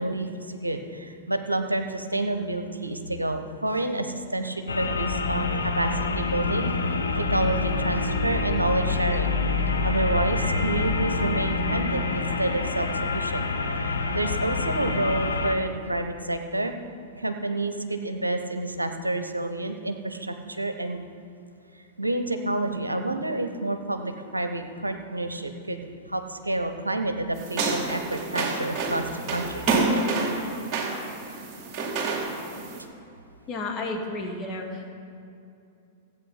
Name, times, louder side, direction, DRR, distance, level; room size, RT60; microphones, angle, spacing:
voice 1, 0.0-9.4 9.8-12.9 13.1-13.5 13.8-16.7 17.2-21.0 22.0-29.7, right 2 dB, 90° right, 7 dB, 0.8 m, -29 dB
sound 1, 4.7-15.6, left 4 dB, 80° left, 0.8 m, -27 dB
sound 2, 27.4-32.8, right 3 dB, 35° right, 2.6 m, -28 dB
voice 2, 33.5-34.9, left 2 dB, 30° left, 1 dB, 1.9 m, -32 dB
14.5 x 8.5 x 5.7 m, 2.6 s
figure-of-eight pair, 100°, 0 cm